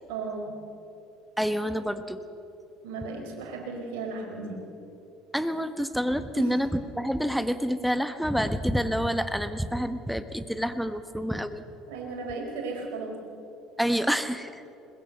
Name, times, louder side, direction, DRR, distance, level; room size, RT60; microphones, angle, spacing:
voice 1, 0.1-0.5 2.8-4.6 6.4-6.5 11.9-13.2, right 3 dB, 70° right, 0 dB, 4.7 m, -35 dB
voice 2, 1.4-2.2 5.3-11.6 13.8-14.6, equal, ahead, 11 dB, 1.4 m, -28 dB
22.0 x 20.5 x 6.9 m, 2.8 s
hypercardioid pair, 65°, 0 cm